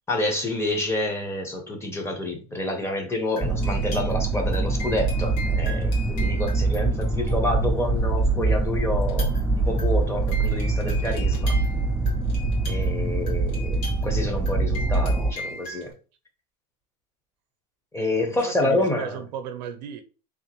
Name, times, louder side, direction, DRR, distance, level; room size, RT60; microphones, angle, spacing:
voice 1, 0.1-11.6 12.7-15.9 17.9-19.2, left 1 dB, 10° left, 0.9 m, -28 dB
sound 1, 3.4-7.9 9.0-15.9, left 2 dB, 75° left, 1.9 m, -40 dB
sound 2, 3.4-15.3, right 3 dB, 5° right, 0.3 m, -24 dB
voice 2, 18.3-20.0, right 8 dB, 85° right, 0.7 m, -35 dB
3.6 x 2.6 x 3.0 m
supercardioid pair, 130°, 21 cm